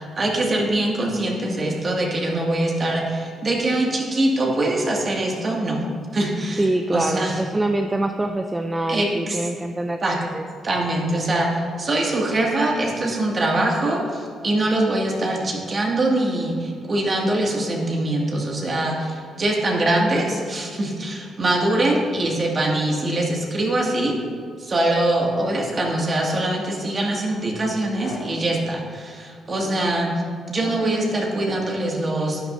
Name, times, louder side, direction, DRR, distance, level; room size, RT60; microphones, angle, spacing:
voice 1, 0.0-5.8 6.1-7.4 8.9-9.4 10.0-10.2 10.6-24.2 24.6-30.1 30.5-32.4, right 1 dB, 40° right, -1 dB, 2.0 m, -23 dB
voice 2, 6.6-10.4, right 2 dB, 15° right, 5 dB, 0.5 m, -25 dB
sound 1, 25.2-25.8 26.2-26.7 27.9-28.5 29.5-30.0 30.5-31.0 31.5-31.8, left 2 dB, 85° left, 1.9 m, -39 dB
11.5 x 9.9 x 2.6 m, 2.1 s
cardioid pair, 90°, 0 cm